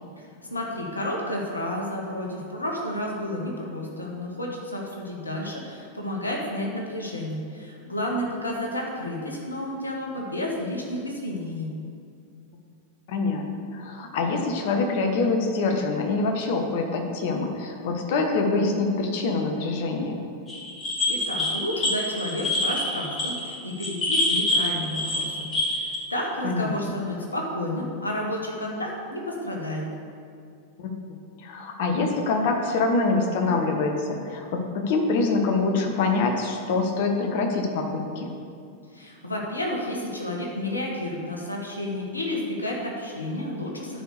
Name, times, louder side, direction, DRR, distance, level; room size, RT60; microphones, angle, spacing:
voice 1, 0.2-11.7 21.1-29.8 38.9-44.0, left 1 dB, 80° left, -1 dB, 1.7 m, -31 dB
voice 2, 13.1-20.2 26.4-26.9 30.8-30.9 31.4-38.3, left 3 dB, 50° left, 3 dB, 1.3 m, -25 dB
sound 1, 20.5-26.0, left 2 dB, 25° left, 2.4 m, -26 dB
11.0 x 4.9 x 6.7 m, 2.4 s
figure-of-eight pair, 90°, 0 cm